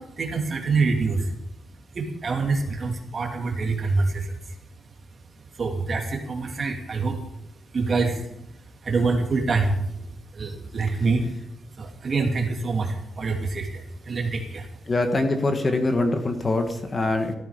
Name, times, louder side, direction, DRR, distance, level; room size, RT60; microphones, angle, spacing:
voice 1, 0.0-1.3 1.9-4.5 5.5-7.2 7.7-8.4 8.8-9.8 10.3-11.3 11.7-14.7, right 3 dB, 35° right, 2 dB, 2.7 m, -26 dB
voice 2, 14.9-17.3, left 2 dB, 25° left, 6 dB, 1.5 m, -23 dB
17.0 x 13.5 x 5.1 m, 0.81 s
wide cardioid pair, 175°, 0 cm